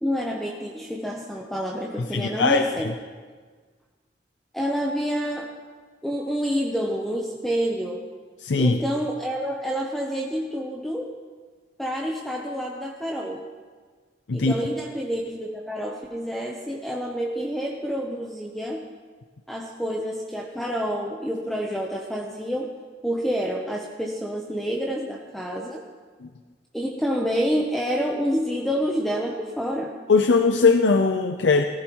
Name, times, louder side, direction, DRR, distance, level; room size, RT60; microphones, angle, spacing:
voice 1, 0.0-2.9 4.5-5.5 6.0-8.0 8.6-11.2 11.8-13.4 14.3-18.8 19.5-22.7 23.0-25.8 26.7-30.0, equal, ahead, -1 dB, 0.8 m, -28 dB
voice 2, 2.1-2.9 8.4-8.8 14.3-14.5 26.2-26.3 30.1-31.6, left 4 dB, 85° left, 6 dB, 0.6 m, -20 dB
17.5 x 14.5 x 3.1 m, 1.5 s
head